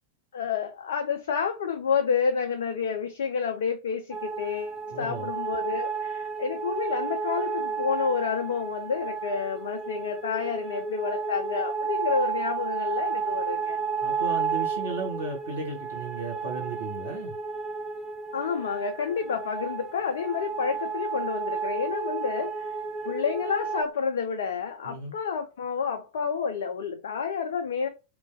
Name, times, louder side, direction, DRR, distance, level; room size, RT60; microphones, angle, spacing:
voice 1, 0.3-13.8 18.3-22.8 23.1-27.9, left 6 dB, 60° left, 0.4 m, -29 dB
sound 1, 4.1-23.8, right 5 dB, 15° right, 0.6 m, -32 dB
voice 2, 4.9-5.3 14.0-17.3 24.8-25.2, right 4 dB, 70° right, 1.4 m, -35 dB
3.1 x 2.2 x 2.7 m
figure-of-eight pair, 90°, 0 cm